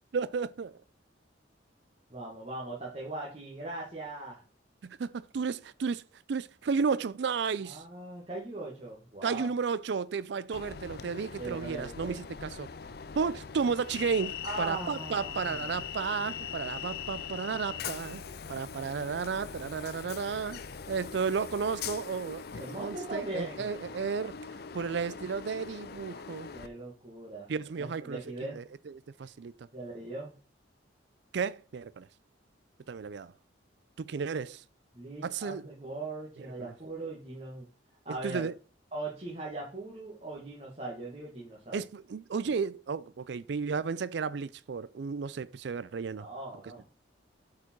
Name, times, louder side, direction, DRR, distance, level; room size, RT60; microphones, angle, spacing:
voice 1, 0.1-0.7 4.8-6.0 6.3-7.8 9.2-12.7 13.2-18.2 18.5-20.6 20.9-24.4 24.7-26.5 27.5-28.2 28.5-28.9 29.2-29.5 31.3-32.1 32.9-33.3 34.0-34.6 35.2-35.6 36.6-36.7 38.2-38.5 41.7-46.3, right 5 dB, 65° right, 0.4 m, -33 dB
voice 2, 2.1-4.4 7.6-9.5 11.4-12.1 14.4-15.6 22.6-23.6 26.5-27.5 27.8-28.6 29.7-30.3 34.9-37.7 38.1-38.5 38.9-41.8 46.2-46.9, right 2 dB, 35° right, 1.9 m, -40 dB
Train, 10.5-26.7, left 7 dB, 55° left, 0.5 m, -41 dB
8.2 x 4.9 x 4.6 m
head